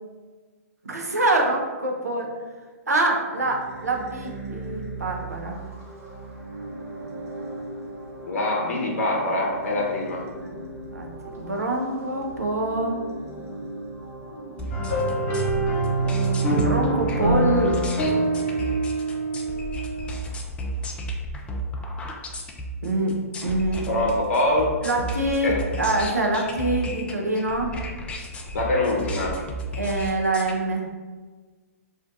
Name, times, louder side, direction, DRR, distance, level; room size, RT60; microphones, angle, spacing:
voice 1, 0.8-2.3 2.9-5.6 10.4-10.6 10.9-11.1 11.3-13.0 16.5-17.8 22.8-23.8 24.8-27.8 29.8-30.9, right 2 dB, 90° right, 1 dB, 0.6 m, -25 dB
sound 1, 3.3-18.8, right 2 dB, 65° right, 0.9 m, -38 dB
voice 2, 8.3-10.3 23.9-24.8 25.4-25.6 28.5-29.4, left 1 dB, 60° left, -1 dB, 0.7 m, -24 dB
sound 2, 14.6-30.5, equal, 15° left, 0.3 m, -33 dB
sound 3, 14.7-20.3, right 2 dB, 40° left, 1.1 m, -25 dB
2.5 x 2.2 x 3.7 m, 1.4 s
figure-of-eight pair, 120°, 8 cm